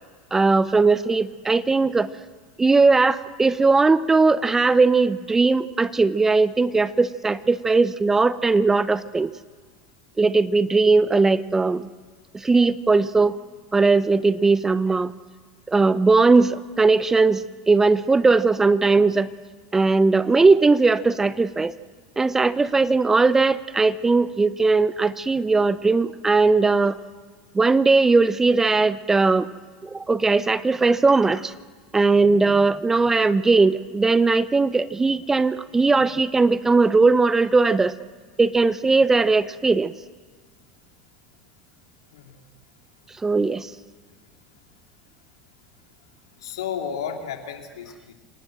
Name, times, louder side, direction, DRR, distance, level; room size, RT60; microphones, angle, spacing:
voice 1, 0.3-2.1 2.6-9.3 10.2-11.9 12.3-13.4 13.7-15.1 15.7-19.3 19.7-21.7 22.2-27.0 27.5-29.5 29.8-31.5 31.9-37.9 38.4-39.9 43.2-43.7, right 3 dB, 15° right, 16 dB, 0.8 m, -19 dB
voice 2, 46.4-48.1, left 7 dB, 75° left, 4 dB, 3.0 m, -32 dB
27.5 x 18.0 x 7.7 m, 1.5 s
hypercardioid pair, 80°, 3 cm